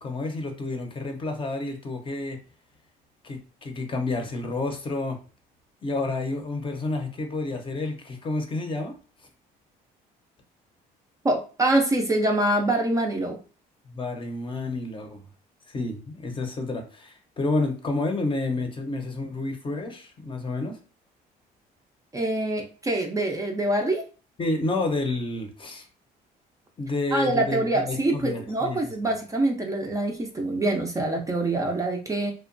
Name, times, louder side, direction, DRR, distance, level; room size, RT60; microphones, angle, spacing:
voice 1, 0.0-2.4 3.2-5.2 5.8-8.9 13.9-15.2 15.7-20.8 24.4-25.9 26.8-27.6 27.9-28.8, left 2 dB, 30° left, 4 dB, 0.6 m, -30 dB
voice 2, 11.2-13.4 22.1-24.0 27.1-32.3, right 2 dB, 20° right, 2 dB, 0.4 m, -25 dB
2.8 x 2.1 x 2.5 m, 0.36 s
cardioid pair, 110°, 17 cm